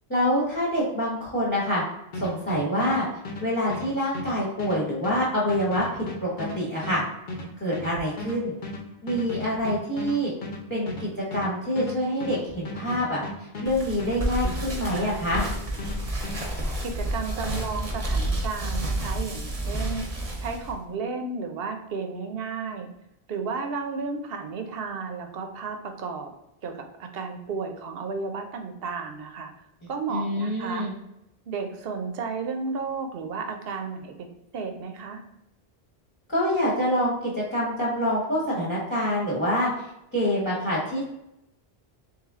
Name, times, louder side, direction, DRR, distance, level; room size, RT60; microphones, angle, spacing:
voice 1, 0.1-1.8 2.2-3.1 3.4-7.0 7.6-8.5 9.0-10.3 10.7-13.2 13.6-15.4 30.1-30.9 36.3-39.7 40.1-41.0, equal, 10° left, -5 dB, 1.0 m, -26 dB
sound 1, 2.1-15.1 15.3-16.4, left 2 dB, 55° left, 0.8 m, -35 dB
sound 2, 13.6-20.7, right 1 dB, 40° right, 0.8 m, -30 dB
voice 2, 16.8-20.0 20.4-22.9 23.3-26.3 26.6-29.5 29.9-30.9 31.5-34.3 34.5-35.2, right 4 dB, 70° right, 5 dB, 0.8 m, -33 dB
3.4 x 3.2 x 3.5 m, 0.83 s
omnidirectional pair, 1.0 m